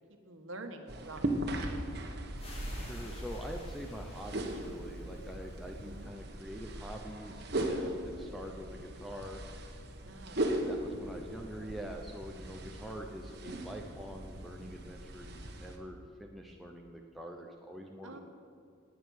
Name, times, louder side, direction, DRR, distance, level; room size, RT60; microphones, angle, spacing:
voice 1, 0.2-1.8 5.7-6.1 10.0-10.7 18.0-18.2, right 2 dB, 75° right, 5 dB, 1.6 m, -47 dB
sound 1, 0.9-15.8, right 1 dB, 50° right, 1.4 m, -39 dB
sound 2, 2.3-2.4 3.6-3.7 4.1-4.2 5.3-5.4 5.8-5.9 7.1-7.2 7.5-7.6 8.8-8.9 9.2-9.3 10.5-10.6 10.9-11.0 12.2-12.3 12.6-12.7 13.9-14.0 14.3-14.4, left 1 dB, 85° left, 1.7 m, -53 dB
sound 3, 2.4-6.0, left 1 dB, 30° left, 2.6 m, -53 dB
voice 2, 2.7-9.4 10.4-18.2, equal, ahead, 0 dB, 0.8 m, -45 dB
19.0 x 9.3 x 6.5 m, 2.4 s
head